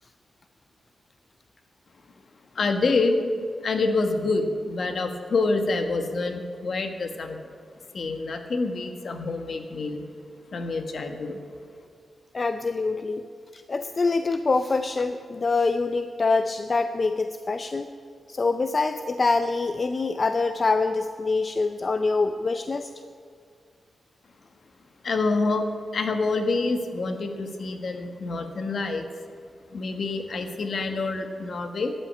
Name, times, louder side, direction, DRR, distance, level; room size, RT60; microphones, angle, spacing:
voice 1, 2.5-7.4 7.9-10.1 10.5-11.4 25.0-25.7 25.9-29.1 29.7-31.9, left 3 dB, 60° left, 6 dB, 1.4 m, -27 dB
voice 2, 12.3-13.2 13.5-17.9 18.3-22.9, left 3 dB, 40° left, 8 dB, 0.5 m, -25 dB
13.0 x 9.1 x 8.7 m, 2.1 s
cardioid pair, 90°, 0 cm